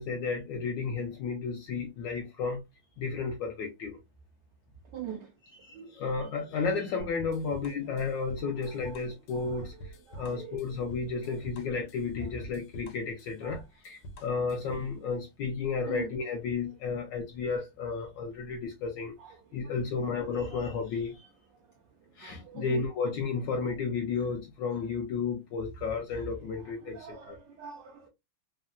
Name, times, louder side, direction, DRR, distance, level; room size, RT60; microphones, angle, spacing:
voice 1, 0.0-2.6 3.0-4.0 5.6-19.2 19.5-21.3 22.2-27.4, left 5 dB, 70° left, 1.1 m, -33 dB
voice 2, 4.9-5.3 5.7-6.2 8.8-9.0 9.3-10.6 13.4-13.6 15.9-16.1 19.2-19.4 20.1-20.6 22.2-22.8 26.9-28.1, right 9 dB, 80° right, 0.9 m, -44 dB
sound 1, 7.0-14.9, equal, 90° left, 1.5 m, -46 dB
3.6 x 2.1 x 2.3 m
omnidirectional pair, 2.4 m